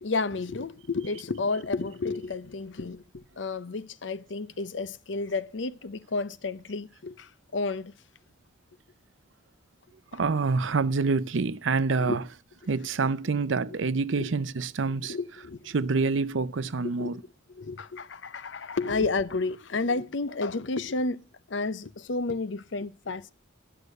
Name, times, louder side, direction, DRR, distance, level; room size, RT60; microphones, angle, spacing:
voice 1, 0.0-7.9 10.1-10.2 12.0-12.2 14.2-14.3 15.0-15.7 17.0-17.2 17.5-23.3, left 3 dB, 70° left, 0.7 m, -31 dB
voice 2, 10.1-12.2 12.7-15.2 15.7-17.2, right 4 dB, 85° right, 0.6 m, -27 dB
11.5 x 6.7 x 6.5 m
head